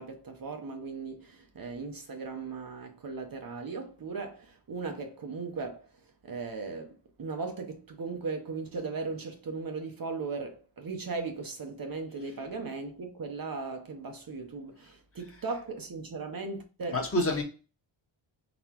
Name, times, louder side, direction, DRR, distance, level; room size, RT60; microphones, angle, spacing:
voice 1, 0.0-5.9 6.2-17.0, right 4 dB, 45° right, 0.8 m, -37 dB
voice 2, 15.3-15.6 16.9-17.4, left 1 dB, 25° left, 1.2 m, -30 dB
4.2 x 4.0 x 2.8 m
wide cardioid pair, 155°, 49 cm